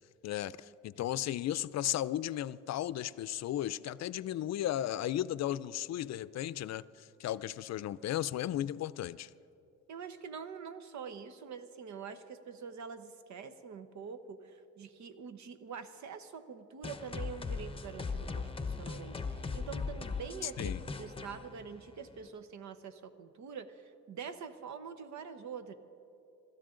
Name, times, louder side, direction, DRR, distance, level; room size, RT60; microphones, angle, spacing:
voice 1, 0.2-9.3 20.4-20.8, left 12 dB, 60° left, 0.5 m, -35 dB
voice 2, 9.9-25.7, right 6 dB, 70° right, 1.1 m, -45 dB
sound 1, 16.8-22.3, left 4 dB, 20° left, 0.9 m, -39 dB
26.5 x 13.0 x 3.8 m
cardioid pair, 90°, 30 cm